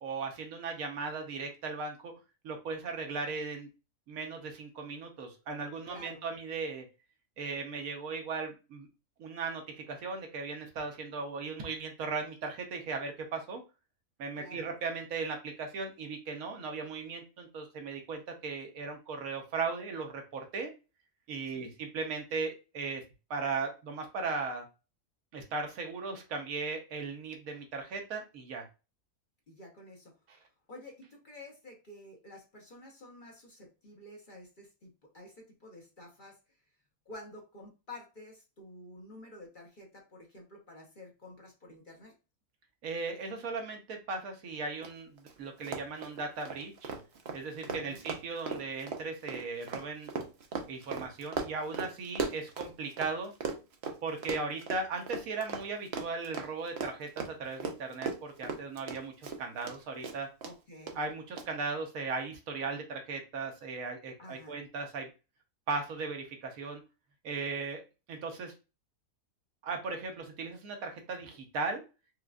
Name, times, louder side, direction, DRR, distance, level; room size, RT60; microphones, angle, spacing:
voice 1, 0.0-2.1 2.4-3.7 4.1-6.8 7.4-8.9 9.2-13.6 14.2-20.7 21.3-23.0 23.3-24.7 25.3-28.7 30.3-30.4 42.8-46.9 47.3-50.1 50.7-53.3 54.0-60.3 61.0-65.1 65.7-66.8 67.2-67.8 68.1-68.5 69.6-71.8, right 4 dB, 80° right, 4 dB, 1.2 m, -37 dB
voice 2, 5.9-6.2 14.4-14.6 21.5-21.7 29.5-30.1 30.7-34.9 35.1-36.4 37.1-42.1 47.7-48.0 60.4-61.0 64.2-64.6, left 1 dB, 40° left, -1 dB, 0.9 m, -50 dB
Run, 44.8-44.9 45.2-45.3 45.6-53.1 53.4-59.8 60.0-60.5 60.9-61.0 61.4-61.5, right 5 dB, 60° right, 0.8 m, -37 dB
4.8 x 2.3 x 2.3 m, 0.30 s
omnidirectional pair, 1.5 m